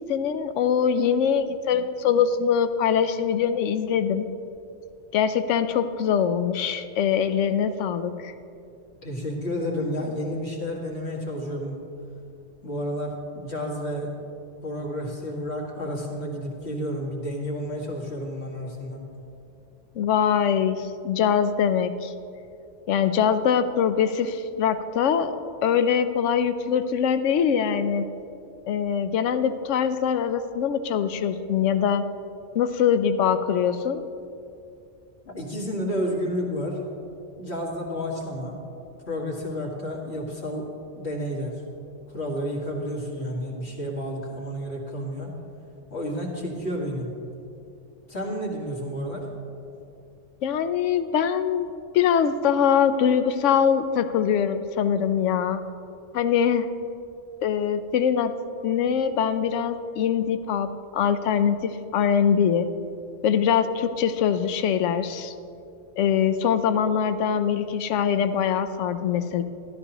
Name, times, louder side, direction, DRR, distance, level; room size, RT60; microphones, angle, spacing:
voice 1, 0.1-4.3 5.1-8.3 20.0-22.1 22.9-25.4 25.6-28.1 28.7-32.0 32.5-34.0 50.4-51.7 51.9-55.6 56.1-56.7 57.4-58.3 58.6-60.7 60.9-62.7 63.2-65.3 66.0-69.4, left 8 dB, 75° left, 11 dB, 0.9 m, -23 dB
voice 2, 9.0-11.8 12.6-14.2 14.6-19.0 35.3-36.8 37.4-38.6 39.1-40.7 41.0-41.6 42.1-45.3 45.9-47.1 48.1-49.3, equal, 60° left, -3 dB, 2.0 m, -31 dB
12.5 x 12.5 x 3.0 m, 2.6 s
omnidirectional pair, 1.3 m